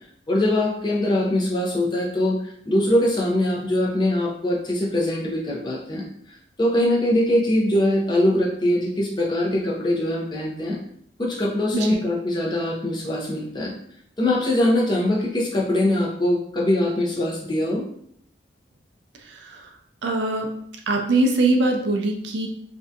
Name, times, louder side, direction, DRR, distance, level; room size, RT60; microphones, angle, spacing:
voice 1, 0.3-6.0 6.6-10.8 11.2-13.7 14.2-17.8, left 1 dB, 25° left, -3 dB, 0.5 m, -22 dB
voice 2, 19.3-19.7 20.0-20.5 20.9-22.5, right 2 dB, 70° right, 2 dB, 0.4 m, -22 dB
2.6 x 2.2 x 2.4 m, 0.67 s
head